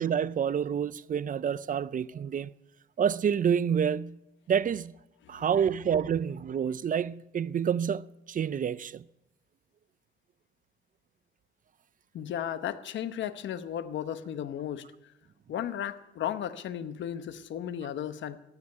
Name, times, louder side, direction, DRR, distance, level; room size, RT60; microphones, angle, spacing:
voice 1, 0.0-2.5 3.0-4.2 4.5-4.9 5.3-9.0, right 8 dB, 40° right, 0.5 m, -28 dB
voice 2, 12.1-14.9 15.5-18.4, left 10 dB, 70° left, 1.0 m, -35 dB
14.0 x 9.9 x 9.7 m
cardioid pair, 90°, 20 cm